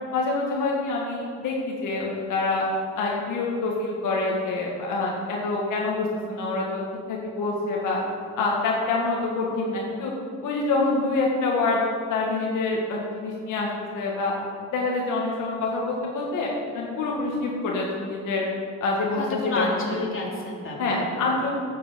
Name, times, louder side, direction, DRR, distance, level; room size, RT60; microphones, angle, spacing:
voice 1, 0.1-2.6 3.0-6.8 7.1-8.0 8.4-10.1 10.4-11.8 12.1-14.3 14.7-18.5 18.8-19.7 20.8-21.5, left 3 dB, 80° left, -2 dB, 1.8 m, -26 dB
voice 2, 19.2-21.3, left 3 dB, 45° left, -3 dB, 3.1 m, -30 dB
9.3 x 7.6 x 7.5 m, 2.3 s
cardioid pair, 90°, 30 cm